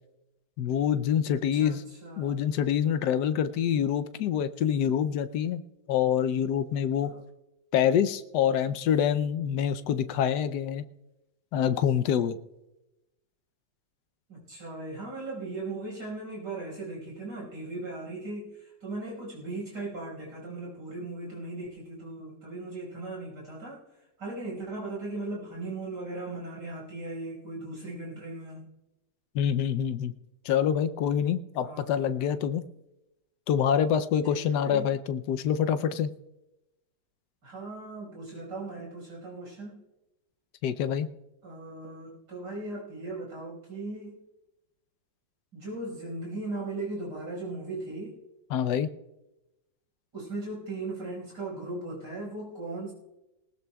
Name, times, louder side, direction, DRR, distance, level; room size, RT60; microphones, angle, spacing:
voice 1, 0.6-1.8 2.2-5.6 5.9-7.1 7.7-10.9 11.5-12.4 29.3-30.1 30.4-32.6 33.5-36.1 40.6-41.1 48.5-48.9, left 8 dB, 70° left, 11 dB, 1.1 m, -26 dB
voice 2, 1.5-2.5 7.1-7.2 14.3-23.8 24.2-28.7 31.6-32.2 34.3-34.9 37.4-39.8 41.4-44.2 45.5-48.2 50.1-52.9, right 2 dB, 65° right, -3 dB, 5.8 m, -38 dB
19.5 x 19.0 x 2.3 m, 0.97 s
omnidirectional pair, 2.1 m